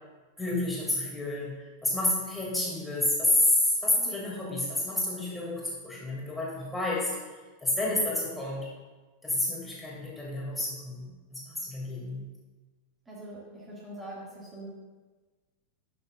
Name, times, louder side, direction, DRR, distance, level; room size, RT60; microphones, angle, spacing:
voice 1, 0.4-1.6 1.8-7.2 7.6-8.7 9.2-12.2, left 1 dB, 5° left, -5 dB, 2.6 m, -29 dB
voice 2, 13.1-14.7, right 1 dB, 15° right, -6 dB, 2.3 m, -43 dB
12.0 x 6.7 x 2.5 m, 1.3 s
figure-of-eight pair, 90°, 0 cm